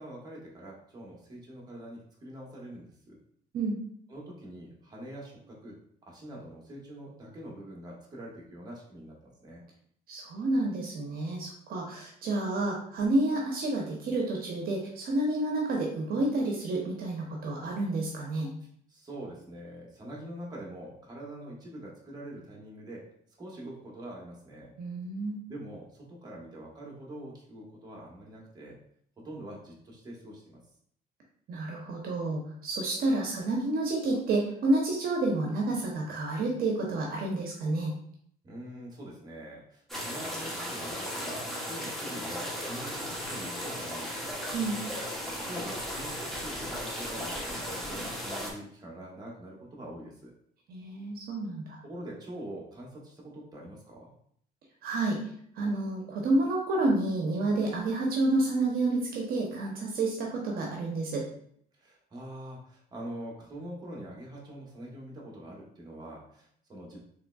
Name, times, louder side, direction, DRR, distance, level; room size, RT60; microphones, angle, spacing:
voice 1, 0.0-3.2 4.1-9.6 18.6-23.1 23.4-24.7 25.5-28.8 29.2-30.6 38.4-44.4 45.3-50.3 51.8-54.1 61.7-67.0, right 1 dB, 25° right, -3 dB, 1.1 m, -44 dB
voice 2, 10.1-18.5 24.8-25.4 31.5-37.9 44.5-44.8 50.7-51.8 54.8-55.2 55.6-61.2, right 2 dB, 60° right, -1 dB, 0.8 m, -29 dB
sound 1, 39.9-48.5, equal, ahead, 0.9 m, -36 dB
3.7 x 3.1 x 2.3 m, 0.65 s
cardioid pair, 110°, 17 cm